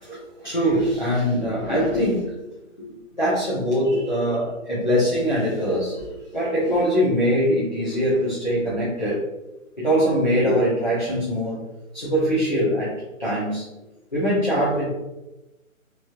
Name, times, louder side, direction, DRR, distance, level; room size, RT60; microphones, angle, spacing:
voice 1, 0.4-2.3 2.8-2.9 3.2-9.2 9.8-11.6 11.9-12.9 13.2-13.6 14.1-14.9, equal, 35° left, -10 dB, 0.7 m, -22 dB
3.0 x 2.9 x 2.3 m, 0.99 s
hypercardioid pair, 180°, 41 cm